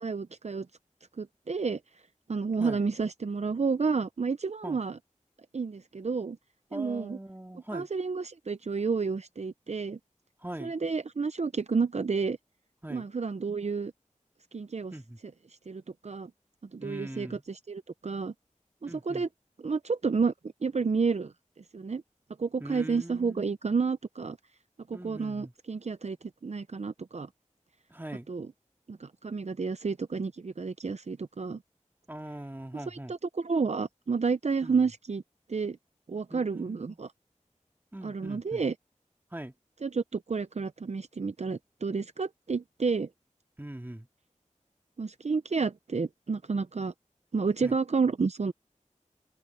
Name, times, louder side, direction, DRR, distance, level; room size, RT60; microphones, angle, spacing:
voice 1, 0.0-0.7 1.2-1.8 2.3-5.0 5.5-6.4 6.7-7.2 7.7-10.0 10.6-12.4 12.9-13.9 14.5-15.0 15.7-16.3 16.7-18.3 18.8-19.3 19.6-20.3 20.6-21.3 21.7-22.0 22.4-24.4 24.9-26.2 26.4-27.3 28.3-28.5 28.9-31.6 32.9-35.2 35.5-35.8 36.1-37.1 38.0-38.7 39.8-43.1 45.0-46.9 47.3-48.5, right 4 dB, 55° right, 0.6 m, -30 dB
voice 2, 6.7-7.9 10.4-10.7 12.8-13.1 14.9-15.2 16.8-17.4 18.8-19.3 22.6-23.5 24.9-25.5 27.9-28.3 32.1-33.1 34.6-34.8 36.3-37.0 37.9-38.6 39.3-39.5 43.6-44.1 47.6-47.8, right 1 dB, 15° right, 2.3 m, -41 dB
open air
wide cardioid pair, 45°, 13 cm